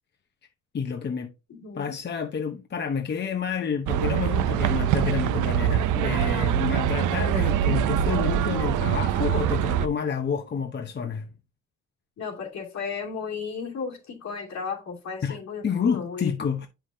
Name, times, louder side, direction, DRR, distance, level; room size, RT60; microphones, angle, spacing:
voice 1, 0.7-1.3 1.7-11.3 15.2-15.4 15.6-16.7, left 6 dB, 35° left, 0.8 m, -29 dB
voice 2, 1.5-2.0 12.2-16.3, left 5 dB, 65° left, 2.7 m, -34 dB
sound 1, 3.9-9.9, right 10 dB, 80° right, 0.6 m, -24 dB
8.3 x 5.7 x 2.8 m
cardioid pair, 90°, 30 cm